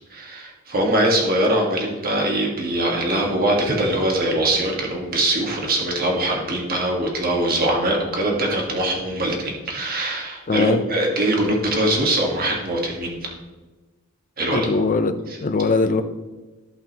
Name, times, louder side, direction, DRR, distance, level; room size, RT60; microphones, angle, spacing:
voice 1, 0.1-13.3 14.4-14.7 15.3-15.4, right 1 dB, 40° right, -1 dB, 1.7 m, -22 dB
voice 2, 10.5-10.8 14.5-16.0, left 3 dB, 35° left, 9 dB, 0.5 m, -21 dB
14.5 x 5.5 x 3.0 m, 1.2 s
head